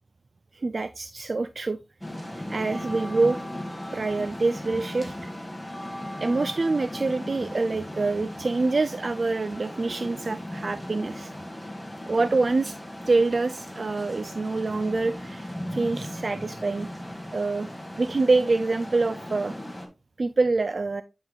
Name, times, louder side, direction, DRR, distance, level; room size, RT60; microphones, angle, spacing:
voice 1, 0.5-1.8 2.5-3.4 3.9-5.3 6.2-11.3 12.1-12.7 13.1-16.9 17.3-17.7 18.0-19.5 20.2-21.0, right 3 dB, 55° right, 0.3 m, -26 dB
sound 1, 2.0-19.9, left 1 dB, ahead, 1.7 m, -37 dB
9.4 x 5.1 x 2.3 m
wide cardioid pair, 60°, 0 cm